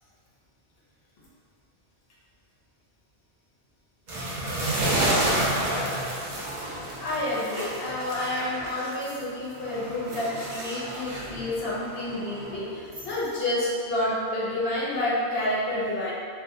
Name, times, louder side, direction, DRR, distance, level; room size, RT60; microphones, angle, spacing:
sound 1, 4.1-9.2 9.6-13.3, right 1 dB, 55° right, 0.6 m, -30 dB
voice 1, 6.8-16.1, left 1 dB, 70° left, -7 dB, 0.8 m, -29 dB
2.5 x 2.0 x 2.5 m, 2.1 s
omnidirectional pair, 1.1 m